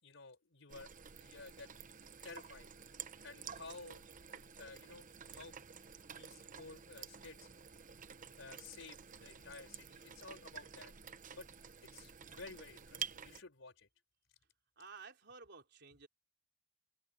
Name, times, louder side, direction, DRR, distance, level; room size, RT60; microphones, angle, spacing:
voice 1, 0.0-0.9 1.2-1.7 2.2-2.7 3.2-5.6 6.0-7.5 8.4-10.9 11.3-11.5 11.8-13.9, left 3 dB, 70° left, 4.7 m, -53 dB
sound 1, 0.7-13.4, right 7 dB, 40° right, 0.9 m, -51 dB
voice 2, 14.8-16.1, right 4 dB, 60° right, 3.8 m, -54 dB
head